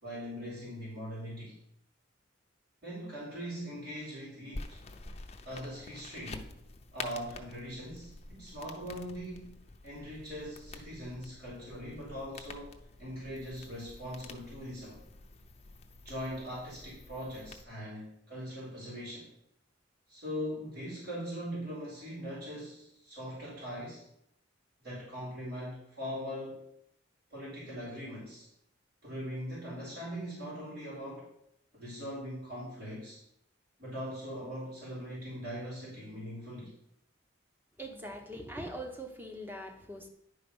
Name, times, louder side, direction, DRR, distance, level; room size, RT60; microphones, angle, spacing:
voice 1, 0.0-1.6 2.8-4.8 5.4-6.5 6.9-9.6 9.8-12.7 13.0-15.0 16.0-19.3 20.1-24.0 24.8-26.6 27.3-28.5 29.0-31.3 31.7-33.2 33.8-36.7, equal, 60° right, -10 dB, 3.9 m, -41 dB
sound 1, 4.5-17.6, left 3 dB, 35° left, 0.6 m, -48 dB
voice 2, 37.8-40.1, right 1 dB, 10° right, 4 dB, 0.9 m, -42 dB
10.5 x 4.6 x 5.4 m, 0.75 s
head